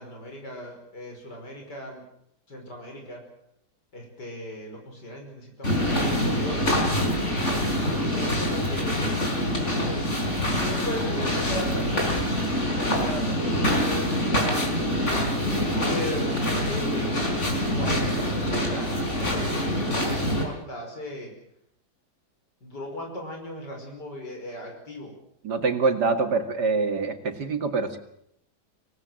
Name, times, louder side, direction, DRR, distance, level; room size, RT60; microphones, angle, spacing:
voice 1, 0.0-2.0 2.5-3.2 3.9-6.8 7.8-9.0 10.5-12.1 12.7-14.9 15.7-21.3 22.6-25.1, left 1 dB, 85° left, 2 dB, 6.0 m, -37 dB
sound 1, 5.6-20.4, equal, 45° left, 5.0 m, -25 dB
voice 2, 25.4-28.0, right 4 dB, 75° right, 6 dB, 2.7 m, -25 dB
25.0 x 18.5 x 7.8 m, 0.73 s
omnidirectional pair, 1.8 m